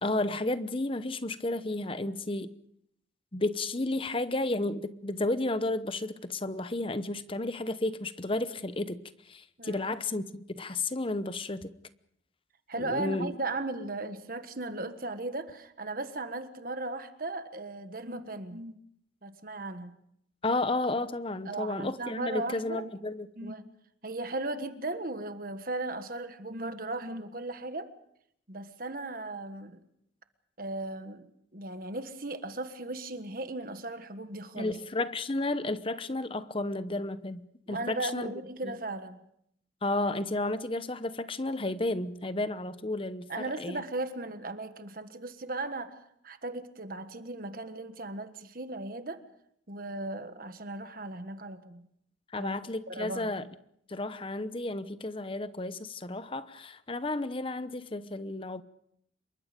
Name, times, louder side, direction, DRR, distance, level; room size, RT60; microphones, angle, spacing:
voice 1, 0.0-2.5 3.3-9.0 9.3-11.7 12.8-13.3 20.4-23.5 34.6-37.4 37.7-38.3 38.6-38.7 39.8-43.8 52.3-53.5 53.9-58.6, left 2 dB, 30° left, 0.9 m, -32 dB
voice 2, 12.7-18.8 19.2-19.9 21.4-22.9 23.4-23.7 24.0-27.9 28.5-29.8 30.6-34.8 37.7-39.2 43.3-49.2 49.7-51.9 52.4-52.5 52.9-53.5, right 2 dB, 50° right, 1.5 m, -37 dB
27.0 x 23.5 x 5.2 m
head